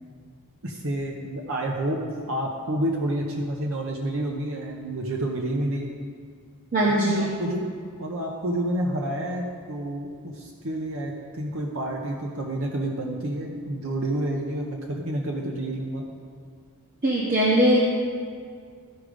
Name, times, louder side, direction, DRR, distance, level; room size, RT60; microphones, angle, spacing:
voice 1, 0.6-5.9 6.8-7.7 8.0-16.0, right 1 dB, 65° right, 0 dB, 0.8 m, -29 dB
voice 2, 6.7-7.3 17.0-17.8, right 1 dB, 40° right, -4 dB, 1.0 m, -20 dB
13.5 x 4.9 x 5.1 m, 2.1 s
head